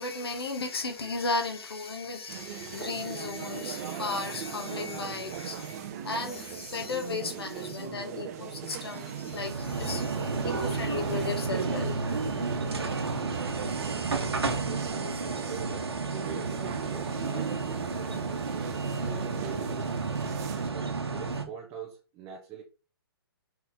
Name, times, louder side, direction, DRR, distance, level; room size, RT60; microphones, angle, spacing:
voice 1, 0.0-12.0, left 3 dB, 75° left, 2.0 m, -35 dB
sound 1, 2.3-20.7, right 8 dB, 40° right, 1.1 m, -39 dB
sound 2, 9.3-21.4, right 4 dB, 85° right, 1.5 m, -32 dB
voice 2, 14.6-18.9 19.3-20.0 20.7-22.6, right 6 dB, 20° right, 1.3 m, -44 dB
6.0 x 4.3 x 4.9 m
hypercardioid pair, 135°, 13 cm